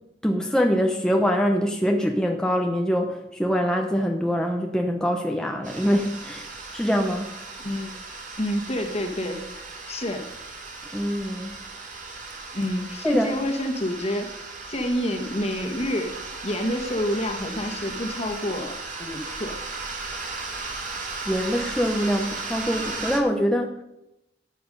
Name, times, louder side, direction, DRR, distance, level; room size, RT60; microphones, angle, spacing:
voice 1, 0.2-6.5 6.7-7.3 10.9-11.5 13.0-13.3 21.3-23.7, equal, 5° left, 2 dB, 0.8 m, -24 dB
sound 1, 5.6-23.2, right 3 dB, 45° right, 2.3 m, -36 dB
voice 2, 7.6-7.9 8.4-9.4 9.9-10.3 12.5-14.3 14.7-16.2 16.4-19.6, left 1 dB, 35° left, 4 dB, 1.7 m, -28 dB
13.5 x 9.3 x 5.5 m, 0.88 s
head